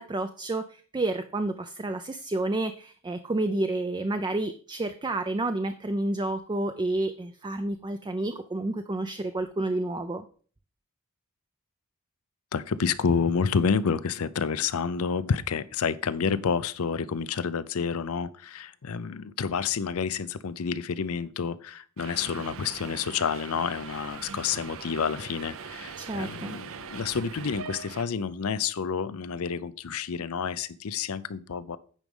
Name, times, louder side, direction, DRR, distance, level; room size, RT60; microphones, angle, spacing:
voice 1, 0.0-10.3 26.0-26.5, right 2 dB, 20° right, 8 dB, 0.4 m, -30 dB
voice 2, 12.5-31.8, left 6 dB, 70° left, 15 dB, 0.5 m, -29 dB
Subway metro underground, 22.0-28.0, right 6 dB, 65° right, 0.7 m, -42 dB
9.1 x 5.1 x 5.4 m, 0.43 s
head